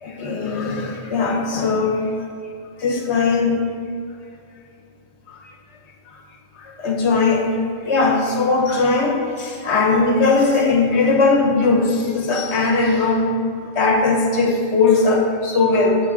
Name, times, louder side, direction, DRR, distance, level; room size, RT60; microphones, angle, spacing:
voice 1, 0.0-2.0 2.8-3.6 6.8-7.5 7.8-13.3 13.7-16.0, left 3 dB, 85° left, 1 dB, 1.2 m, -19 dB
7.3 x 5.7 x 3.6 m, 2.4 s
omnidirectional pair, 1.1 m